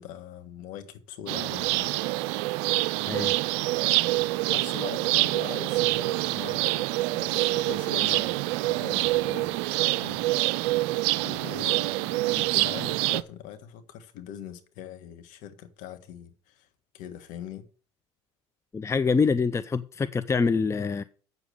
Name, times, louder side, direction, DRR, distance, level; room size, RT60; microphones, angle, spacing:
voice 1, 0.0-1.9 4.5-6.8 7.1-10.2 10.5-10.7 11.2-16.7 16.9-17.7, left 9 dB, 60° left, 1.6 m, -42 dB
sound 1, 1.3-13.2, right 18 dB, 65° right, 0.5 m, -26 dB
voice 2, 18.7-21.0, left 5 dB, 20° left, 0.6 m, -25 dB
8.2 x 7.1 x 6.4 m
hypercardioid pair, 70°, 15 cm